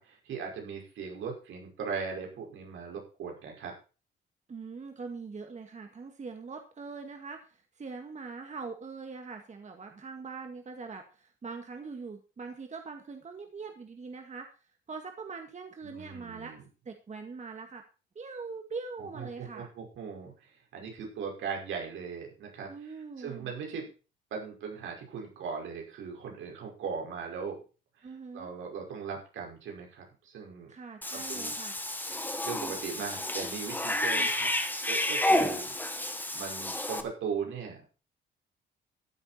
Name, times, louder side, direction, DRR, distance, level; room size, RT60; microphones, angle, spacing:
voice 1, 0.0-3.7 15.8-16.6 19.0-22.7 23.2-23.9 24.3-27.6 28.0-30.7 31.1-31.5 32.4-34.5 34.9-35.7 36.1-37.8, right 6 dB, 80° right, 1 dB, 5.5 m, -39 dB
voice 2, 4.5-14.5 14.9-16.6 16.9-17.8 18.2-19.7 22.7-23.5 28.0-28.5 30.7-31.7 33.9-34.3, right 4 dB, 35° right, 5 dB, 2.0 m, -42 dB
Cat / Bathtub (filling or washing), 31.0-37.0, left 1 dB, 10° left, 1.8 m, -30 dB
14.0 x 9.1 x 4.4 m, 0.34 s
cardioid pair, 90°, 20 cm